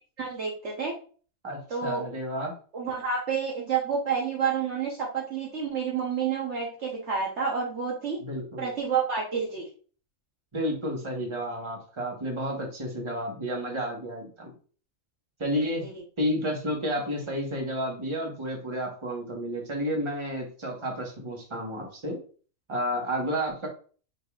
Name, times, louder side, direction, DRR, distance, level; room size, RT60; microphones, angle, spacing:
voice 1, 0.2-0.9 1.7-2.0 2.7-8.2 8.6-9.7 15.8-15.9, right 6 dB, 55° right, -1 dB, 1.2 m, -29 dB
voice 2, 1.4-2.5 8.2-8.7 10.5-14.5 15.4-15.9 16.2-22.2 22.7-23.7, equal, 20° right, 0 dB, 1.2 m, -31 dB
4.9 x 4.0 x 2.4 m, 0.40 s
omnidirectional pair, 1.5 m